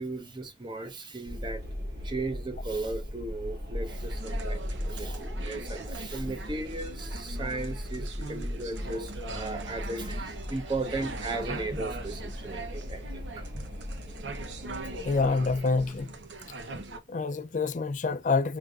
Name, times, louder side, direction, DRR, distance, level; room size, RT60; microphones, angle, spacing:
voice 1, 0.0-1.6 2.0-13.6, right 2 dB, 25° right, 0.7 m, -36 dB
Wind, 1.3-16.6, equal, 65° right, 1.7 m, -38 dB
sound 1, 3.9-17.0, right 3 dB, 80° right, 0.8 m, -41 dB
voice 2, 15.1-16.1 17.1-18.6, left 4 dB, 45° left, 0.4 m, -27 dB
5.1 x 3.3 x 2.4 m
head